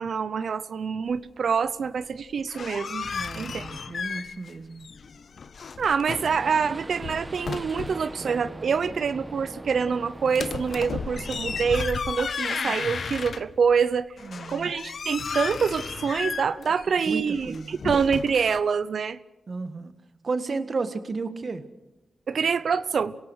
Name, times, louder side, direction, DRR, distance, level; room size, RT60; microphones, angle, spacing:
voice 1, 0.0-3.7 5.8-14.1 14.5-19.2 22.3-23.2, right 6 dB, 75° right, 15 dB, 0.7 m, -26 dB
sound 1, 2.3-4.6 4.8-6.4 6.9-8.1 10.3-13.7 14.2-18.6, left 5 dB, 70° left, 0.9 m, -34 dB
voice 2, 3.1-4.9 14.2-14.7 17.1-17.8 19.5-19.9 20.2-21.6, right 4 dB, 55° right, 11 dB, 1.5 m, -33 dB
sound 2, 6.1-11.8, right 2 dB, 25° right, 1.1 m, -40 dB
26.5 x 17.5 x 6.3 m, 0.99 s
cardioid pair, 45°, 0 cm